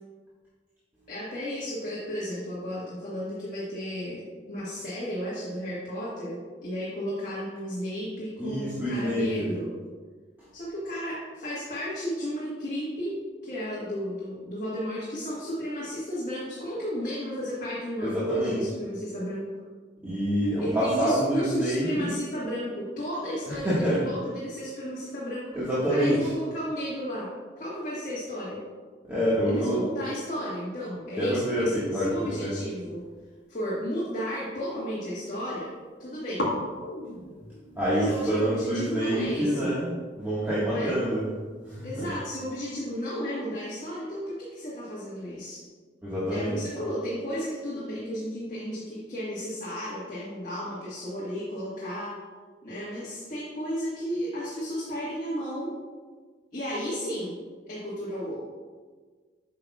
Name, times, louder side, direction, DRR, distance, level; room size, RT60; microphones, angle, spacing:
voice 1, 1.1-9.7 10.5-13.1 13.4-19.4 20.6-27.3 27.6-28.6 29.5-33.0 33.5-35.7 36.0-36.5 37.9-39.7 40.5-41.0 41.8-45.6 46.3-52.1 52.6-55.7 56.5-57.3 57.7-58.4, equal, 45° left, -8 dB, 1.4 m, -33 dB
voice 2, 8.4-9.3 18.0-18.6 20.0-22.2 23.5-24.0 25.5-26.3 29.1-29.8 31.2-32.5 37.7-39.9 40.2-41.2 41.7-42.1 46.0-46.6, equal, 10° right, -11 dB, 1.4 m, -26 dB
sound 1, 32.8-34.6 34.9-35.5 35.8-35.9 36.3-43.2, left 1 dB, 65° left, 1.3 m, -39 dB
8.3 x 6.0 x 2.3 m, 1.5 s
head